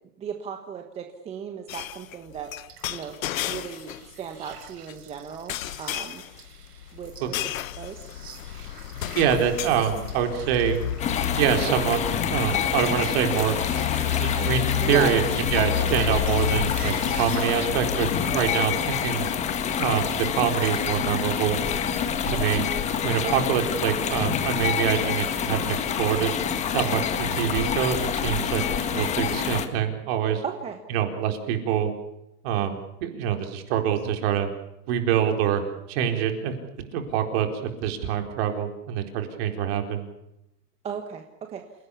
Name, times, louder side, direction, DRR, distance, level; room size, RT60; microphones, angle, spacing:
voice 1, 0.2-2.5 2.9-3.1 3.4-6.2 6.9-7.3 7.8-8.0 14.8-15.2 18.2-18.5 22.4-22.6 23.2-23.5 30.4-30.8 40.8-41.6, right 7 dB, 10° right, 5 dB, 1.3 m, -36 dB
sound 1, 1.7-4.1 4.5-4.9 5.5-18.4, left 11 dB, 50° left, 1.3 m, -31 dB
sound 2, 2.7-19.3, right 8 dB, 65° right, 6.8 m, -47 dB
voice 2, 9.1-10.8 11.4-13.6 14.2-15.2 15.5-19.3 19.8-21.6 22.2-22.6 23.0-26.3 26.7-28.6 28.9-30.4 30.9-31.9 32.4-34.5 34.9-35.6 35.9-36.5 36.9-40.0, right 9 dB, 35° right, 5 dB, 4.4 m, -25 dB
sound 3, 11.0-29.7, left 8 dB, 15° left, 1.6 m, -27 dB
28.5 x 17.5 x 8.5 m, 0.86 s
hypercardioid pair, 160°, 50 cm